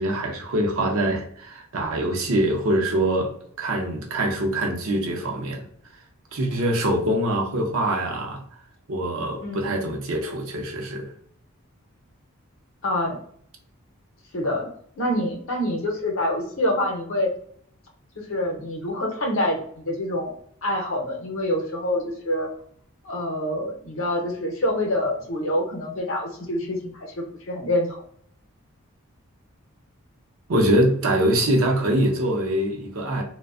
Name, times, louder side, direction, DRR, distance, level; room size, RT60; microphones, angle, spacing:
voice 1, 0.0-3.3 3.6-5.7 6.3-8.4 8.9-11.1 30.5-33.2, right 1 dB, 70° right, 0.6 m, -24 dB
voice 2, 9.4-9.7 12.8-13.2 14.3-14.7 15.0-17.3 18.2-20.3 20.6-22.5 23.0-27.9, left 1 dB, 65° left, 0.7 m, -26 dB
2.4 x 2.1 x 2.3 m
head